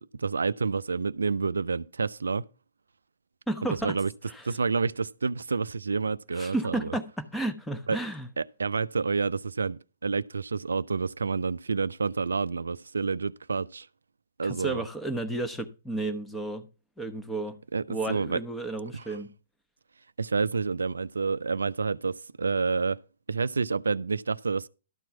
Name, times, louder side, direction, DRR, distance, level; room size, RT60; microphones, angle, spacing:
voice 1, 0.1-2.5 3.8-4.1 4.4-6.9 7.9-8.0 8.4-13.9 14.4-14.9 17.7-18.4 18.9-19.2 20.2-23.0 23.3-24.7, right 4 dB, 75° right, 0.4 m, -29 dB
voice 2, 3.5-3.9 4.3-4.5 6.4-8.3 14.4-16.7 17.0-17.6 17.9-19.3, right 2 dB, 5° left, 1.1 m, -32 dB
12.5 x 4.5 x 5.9 m
figure-of-eight pair, 120°, 0 cm